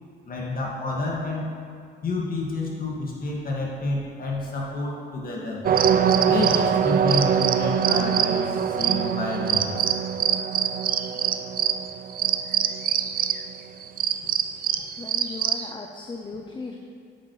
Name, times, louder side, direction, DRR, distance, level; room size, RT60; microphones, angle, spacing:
voice 1, 0.3-1.5 2.0-5.6 6.3-10.0, left 2 dB, 45° left, -3 dB, 2.0 m, -29 dB
sound 1, 5.6-13.5 13.8-15.7, right 8 dB, 50° right, 0.4 m, -23 dB
voice 2, 15.0-16.8, left 4 dB, 25° left, 3 dB, 0.6 m, -37 dB
9.5 x 7.7 x 3.2 m, 2.2 s
cardioid pair, 90°, 20 cm